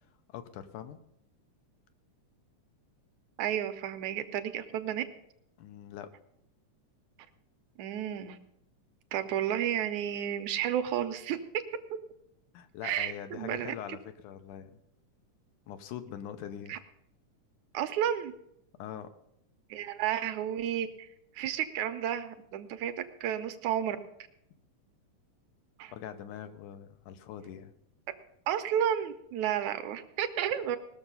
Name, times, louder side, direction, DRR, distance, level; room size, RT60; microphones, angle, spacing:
voice 1, 0.3-1.0 5.6-6.1 12.5-14.8 15.7-16.8 18.8-19.1 25.9-27.7, left 9 dB, 85° left, 9 dB, 2.3 m, -43 dB
voice 2, 3.4-5.0 7.8-8.4 9.1-11.4 12.8-13.7 16.7-16.8 17.7-18.3 19.7-21.1 21.4-24.0 25.8-25.9 28.5-30.8, right 10 dB, 75° right, 9 dB, 2.0 m, -32 dB
20.0 x 6.7 x 5.5 m, 0.77 s
omnidirectional pair, 3.6 m